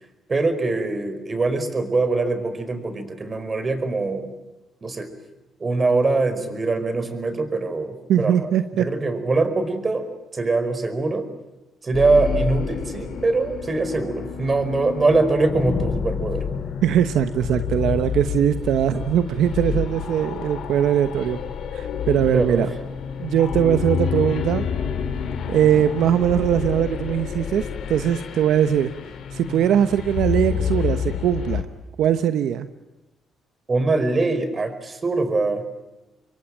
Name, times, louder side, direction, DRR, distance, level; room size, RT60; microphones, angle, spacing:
voice 1, 0.3-4.3 4.8-5.1 5.6-8.5 8.8-10.0 10.3-11.2 11.8-16.4 22.3-22.7 33.7-35.6, right 3 dB, 30° right, 10 dB, 4.9 m, -23 dB
voice 2, 8.1-8.9 16.8-21.4 21.7-22.7 23.2-24.7 25.5-28.9 29.3-31.7 32.0-32.7, right 10 dB, 80° right, 10 dB, 1.0 m, -21 dB
sound 1, 11.9-31.6, left 7 dB, 70° left, 3.0 m, -29 dB
27.5 x 23.0 x 9.1 m, 1.0 s
cardioid pair, 90°, 0 cm